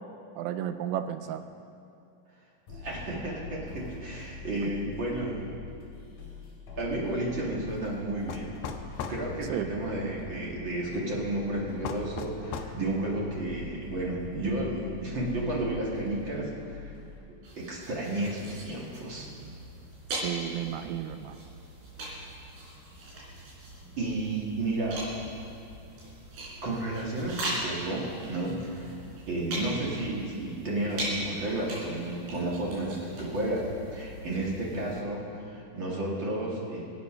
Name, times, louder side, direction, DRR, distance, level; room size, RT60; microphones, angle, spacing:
voice 1, 0.4-1.4 4.6-4.7 9.5-9.7 20.1-21.4, right 11 dB, 80° right, 9 dB, 2.5 m, -33 dB
sound 1, 2.7-17.2, left 3 dB, 55° left, 4.8 m, -44 dB
voice 2, 2.7-5.5 6.8-8.5 9.1-16.9 17.5-19.3 24.0-25.0 26.6-28.9 29.3-36.8, right 1 dB, 40° right, -4 dB, 1.9 m, -32 dB
sound 2, 8.3-9.2 11.8-12.8, left 6 dB, 80° left, 2.8 m, -36 dB
sound 3, 17.4-35.0, right 1 dB, 60° right, 5.4 m, -40 dB
25.0 x 8.4 x 5.6 m, 2.5 s
omnidirectional pair, 5.1 m